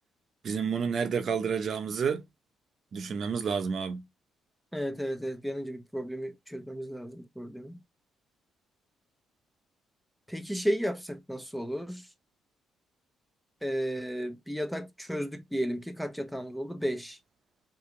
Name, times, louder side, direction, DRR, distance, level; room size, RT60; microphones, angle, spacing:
voice 1, 0.4-2.2 2.9-4.0, right 6 dB, 55° right, 0.7 m, -30 dB
voice 2, 4.7-7.8 10.3-12.1 13.6-17.2, equal, ahead, 0.6 m, -33 dB
2.9 x 2.9 x 3.6 m
cardioid pair, 80°, 0 cm